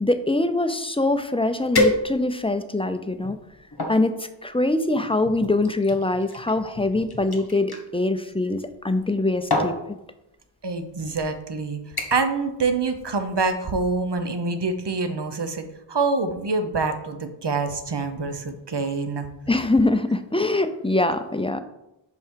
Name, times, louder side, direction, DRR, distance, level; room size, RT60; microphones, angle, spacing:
voice 1, 0.0-3.4 3.9-9.7 19.5-21.6, left 2 dB, 10° left, 9 dB, 0.5 m, -23 dB
sound 1, 1.7-2.5 3.1-4.0 4.9-7.8 8.9-9.2 9.5-9.8 10.7-10.8 11.3-11.5 12.0-12.4 12.7-13.0 13.4-13.5, left 1 dB, 50° left, 1.3 m, -28 dB
voice 2, 10.6-11.8 12.1-19.3, right 4 dB, 60° right, 8 dB, 0.8 m, -26 dB
5.4 x 4.7 x 4.6 m, 0.89 s
wide cardioid pair, 40°, 47 cm